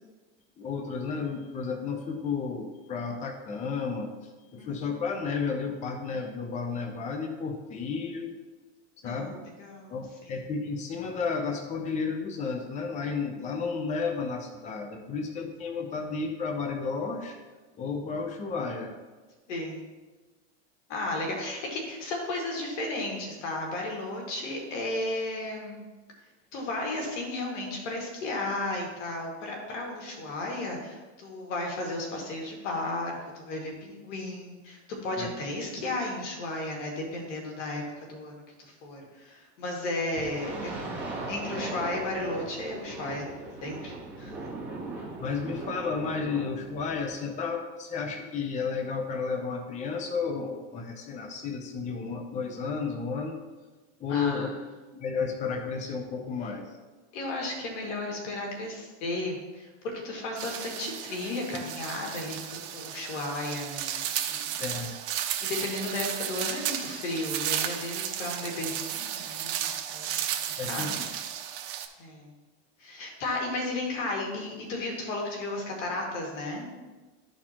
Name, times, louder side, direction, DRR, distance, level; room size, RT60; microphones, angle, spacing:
voice 1, 0.6-4.1 4.5-8.3 9.0-9.4 9.9-17.4 17.8-19.0 35.2-35.3 45.2-53.4 54.0-54.5 54.9-56.7 64.6-64.9 70.6-71.1, left 5 dB, 20° left, 3 dB, 0.7 m, -32 dB
voice 2, 9.6-10.0 10.2-10.4 19.5-19.8 20.9-25.8 26.5-40.7 41.3-43.2 43.6-44.3 54.1-54.5 57.1-64.5 65.4-70.1 70.6-71.0 72.0-72.3 72.8-76.7, left 2 dB, 85° left, 0 dB, 2.2 m, -34 dB
sound 1, 40.2-47.1, right 2 dB, 5° right, 1.9 m, -38 dB
sound 2, 60.4-71.9, right 10 dB, 65° right, 0.9 m, -34 dB
12.5 x 4.4 x 3.0 m, 1.2 s
supercardioid pair, 135°, 35 cm